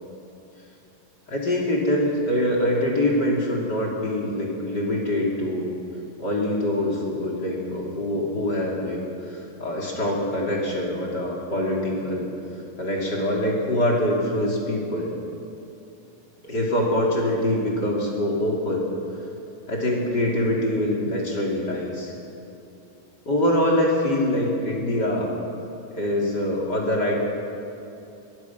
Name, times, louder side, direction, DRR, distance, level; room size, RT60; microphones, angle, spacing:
voice 1, 1.3-5.7 6.2-12.3 12.8-15.1 16.4-18.8 19.7-22.1 23.2-25.3 25.9-27.1, left 1 dB, 25° left, -1 dB, 3.3 m, -24 dB
22.5 x 21.5 x 6.1 m, 2.8 s
omnidirectional pair, 4.9 m